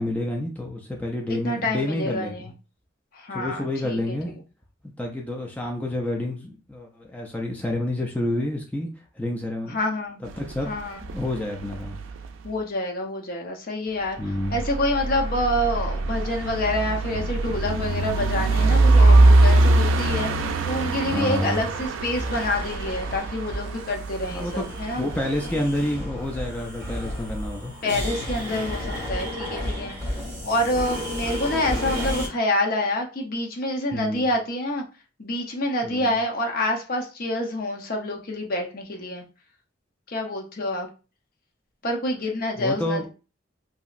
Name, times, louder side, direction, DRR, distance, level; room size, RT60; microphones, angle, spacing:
voice 1, 0.0-2.5 3.3-4.4 5.0-8.9 9.1-9.8 10.2-10.7 11.1-12.0 14.2-14.6 21.1-21.7 24.3-24.7 24.9-27.7 29.4-29.9 30.4-30.5 33.9-34.3 35.8-36.1 42.6-43.1, left 1 dB, 10° left, 0.4 m, -29 dB
voice 2, 1.3-2.5 3.1-4.1 9.7-10.2 10.7-11.0 12.4-14.2 14.5-25.1 27.8-30.0 30.4-34.8 35.2-39.2 40.1-40.9 41.8-43.1, left 1 dB, 50° left, 0.6 m, -27 dB
sound 1, 10.3-12.5 14.1-25.9, right 2 dB, 85° right, 0.3 m, -22 dB
sound 2, 22.1-32.3, left 1 dB, 15° right, 1.7 m, -32 dB
2.9 x 2.7 x 2.4 m
head